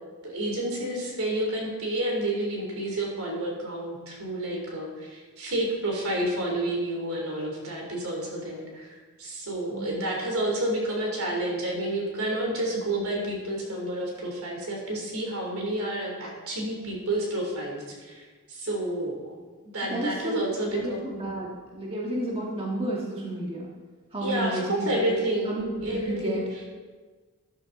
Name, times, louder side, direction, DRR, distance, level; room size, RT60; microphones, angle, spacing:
voice 1, 0.2-19.3 19.6-21.0 24.2-26.4, right 1 dB, 70° right, -1 dB, 3.6 m, -30 dB
voice 2, 9.7-10.0 19.8-23.7 24.1-25.1 25.4-26.5, right 1 dB, 25° right, -3 dB, 1.6 m, -32 dB
13.5 x 11.0 x 4.1 m, 1.4 s
head